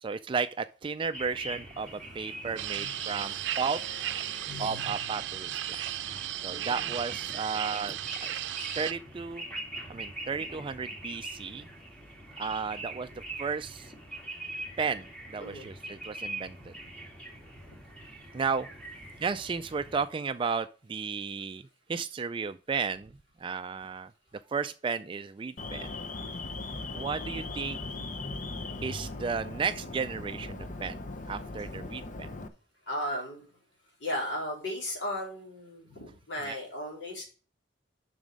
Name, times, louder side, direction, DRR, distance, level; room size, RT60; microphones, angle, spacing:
voice 1, 0.0-3.8 4.6-5.8 6.4-8.4 8.8-9.4 9.9-11.7 12.4-13.1 13.4-13.9 14.8-16.7 18.3-18.7 19.2-23.1 23.4-24.1 24.5-26.0 26.9-27.8 28.8-31.0 31.3-32.3 36.5-36.6, right 5 dB, 25° right, 0.3 m, -34 dB
sound 1, 1.1-20.1, right 1 dB, 5° left, 2.1 m, -43 dB
voice 2, 1.8-5.0 6.5-6.8 15.4-15.7 32.9-33.4 34.0-37.2, left 1 dB, 70° left, 4.0 m, -37 dB
sound 2, 2.6-8.9, right 12 dB, 75° right, 0.5 m, -35 dB
Alarm, 25.6-32.5, left 2 dB, 45° left, 0.8 m, -39 dB
7.4 x 6.1 x 5.1 m
head